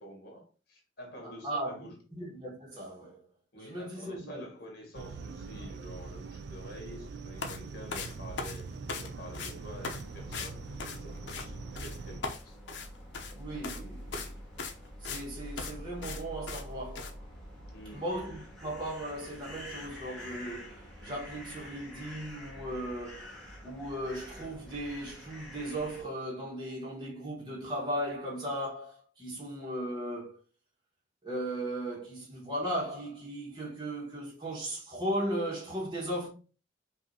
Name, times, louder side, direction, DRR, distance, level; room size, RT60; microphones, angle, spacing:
voice 1, 0.0-2.0 3.5-8.7 9.0-12.6 17.7-18.0, equal, 55° left, 1.7 m, -48 dB
voice 2, 1.2-3.2 3.5-4.5 13.3-14.4 15.0-17.2 17.9-30.4 31.2-36.3, right 1 dB, 25° right, 1.3 m, -37 dB
sound 1, 4.9-12.2, right 4 dB, 60° right, 0.3 m, -43 dB
sound 2, 7.4-7.6 7.9-9.1 9.3-9.5 9.8-10.0 10.3-10.5 10.8-11.5 11.8-12.0 12.2-13.3 13.6-13.8 14.1-14.3 14.6-15.2 15.6-15.7 16.0-16.2 16.5-16.6 17.0-17.1, left 4 dB, 80° left, 0.7 m, -38 dB
sound 3, 9.5-26.0, equal, 5° left, 1.4 m, -47 dB
5.2 x 2.7 x 2.7 m
head